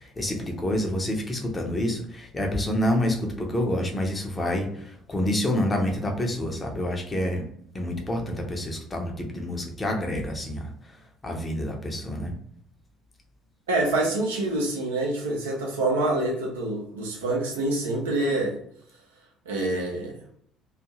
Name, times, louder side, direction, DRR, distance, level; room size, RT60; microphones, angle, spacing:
voice 1, 0.0-7.4 7.7-12.3, left 1 dB, 20° left, 2 dB, 0.7 m, -28 dB
voice 2, 13.7-18.6 19.5-20.2, right 2 dB, 75° right, -1 dB, 0.6 m, -26 dB
2.5 x 2.4 x 2.9 m, 0.67 s
figure-of-eight pair, 55°, 0 cm